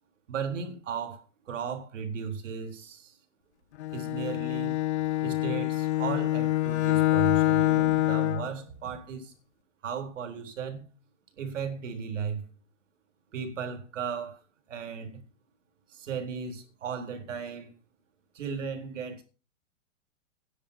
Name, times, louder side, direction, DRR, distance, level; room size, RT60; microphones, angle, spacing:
voice 1, 0.3-3.2 3.9-4.8 5.2-9.3 9.8-10.9 11.4-12.5 13.3-14.4 14.7-15.2 15.9-17.7 18.3-19.2, right 6 dB, 75° right, 3.7 m, -36 dB
Bowed string instrument, 3.8-8.5, left 16 dB, 60° left, 0.8 m, -26 dB
10.5 x 6.9 x 8.0 m
hypercardioid pair, 155°, 37 cm